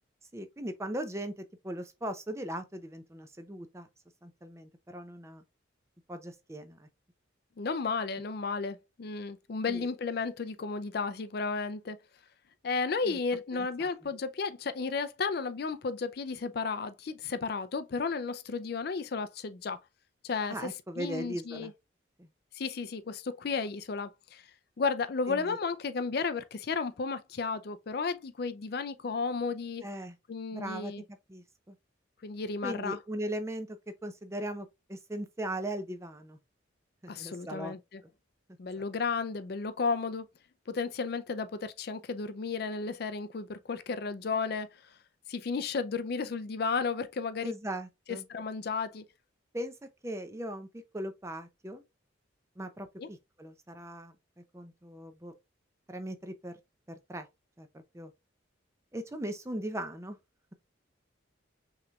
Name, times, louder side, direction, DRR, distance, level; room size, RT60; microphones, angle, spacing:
voice 1, 0.3-3.9 4.2-5.4 6.1-6.9 9.7-9.9 13.0-13.2 13.5-13.9 20.5-21.7 22.2-22.3 25.3-25.6 29.8-30.2 30.5-30.9 31.3-31.8 32.6-36.4 37.0-37.8 38.8-38.9 47.4-48.2 49.5-49.7 50.0-50.7 50.9-51.8 52.6-55.3 55.9-56.5 56.9-57.3 57.6-58.1 58.9-60.2, right 1 dB, 15° right, 0.5 m, -39 dB
voice 2, 7.6-12.0 12.6-19.8 20.2-20.6 21.0-21.7 22.5-24.4 24.8-29.8 30.3-31.0 32.2-33.0 37.1-38.0 38.6-40.3 40.7-44.7 45.3-47.5 48.3-49.0 53.0-53.1, left 4 dB, 50° left, 0.4 m, -33 dB
5.8 x 3.2 x 2.3 m
head